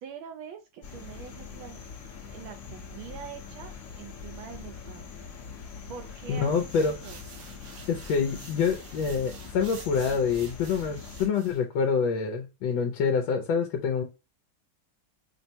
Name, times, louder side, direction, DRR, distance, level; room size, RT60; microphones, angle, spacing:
voice 1, 0.0-5.1 5.9-7.2, right 8 dB, 80° right, 1.4 m, -44 dB
sound 1, 0.8-11.3, left 6 dB, 50° left, 1.0 m, -43 dB
voice 2, 6.3-6.9 7.9-14.0, left 6 dB, 75° left, 1.3 m, -26 dB
sound 2, 6.5-11.6, right 6 dB, 65° right, 0.9 m, -49 dB
5.9 x 2.1 x 2.7 m
omnidirectional pair, 2.2 m